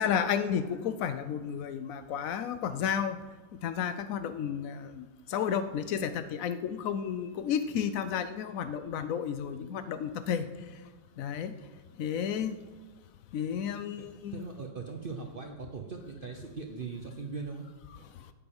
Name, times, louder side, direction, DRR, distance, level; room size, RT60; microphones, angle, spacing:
voice 1, 0.0-3.2 3.6-10.4 11.2-11.5 12.0-12.6 13.3-14.4, left 8 dB, 85° left, 11 dB, 0.7 m, -32 dB
voice 2, 14.3-17.7, right 4 dB, 65° right, 3 dB, 0.5 m, -40 dB
9.9 x 7.1 x 8.7 m, 1.3 s
omnidirectional pair, 2.1 m